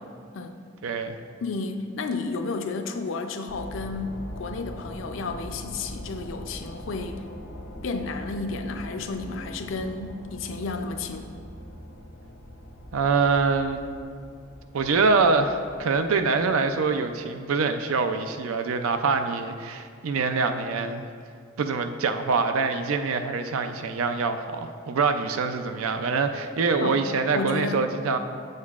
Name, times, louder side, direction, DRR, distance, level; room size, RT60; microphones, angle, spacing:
voice 1, 0.8-1.1 12.9-13.9 14.7-21.0 21.6-28.2, right 4 dB, 80° right, 8 dB, 0.4 m, -25 dB
voice 2, 1.4-7.2 7.8-11.3 26.8-27.0 27.3-27.9, left 3 dB, 65° left, 6 dB, 0.4 m, -32 dB
sound 1, 3.5-17.0, equal, 85° left, 0.9 m, -42 dB
8.0 x 6.5 x 2.4 m, 2.2 s
head